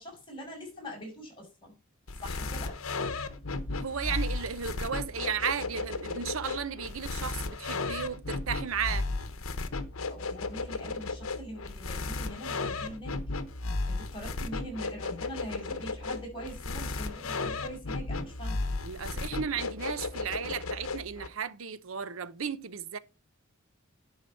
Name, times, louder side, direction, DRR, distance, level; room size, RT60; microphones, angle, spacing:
voice 1, 0.0-1.7 2.2-2.7 10.1-13.2 13.9-18.6, equal, 25° left, 5.6 m, -43 dB
sound 1, 2.1-21.3, left 3 dB, 90° left, 1.0 m, -35 dB
voice 2, 3.7-9.1 18.8-23.0, right 7 dB, 70° right, 0.7 m, -34 dB
11.0 x 4.8 x 5.5 m
head